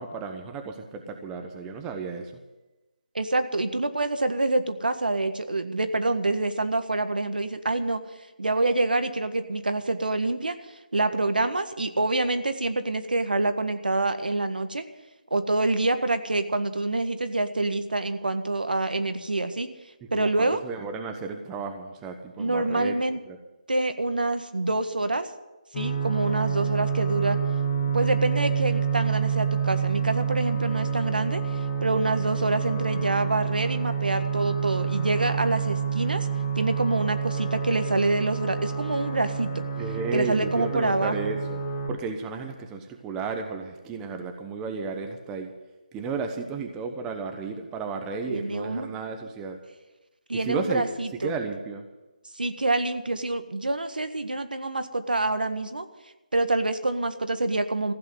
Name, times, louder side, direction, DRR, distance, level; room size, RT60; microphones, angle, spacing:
voice 1, 0.0-2.4 20.0-23.0 23.3-23.4 39.8-41.6 41.9-45.5 45.9-49.6 50.3-51.9, right 4 dB, 10° right, 5 dB, 1.0 m, -33 dB
voice 2, 3.1-8.0 8.4-10.6 10.9-14.8 15.3-19.7 20.1-20.6 22.4-23.2 23.7-25.3 25.7-27.4 27.9-31.4 31.8-36.3 36.6-39.6 40.1-41.1 48.3-48.9 50.3-51.3 52.3-55.8 56.3-57.9, right 2 dB, 85° right, 9 dB, 1.6 m, -26 dB
sound 1, 25.7-41.9, right 7 dB, 30° left, 2.2 m, -28 dB
15.0 x 8.4 x 9.4 m, 1.1 s
figure-of-eight pair, 160°, 5 cm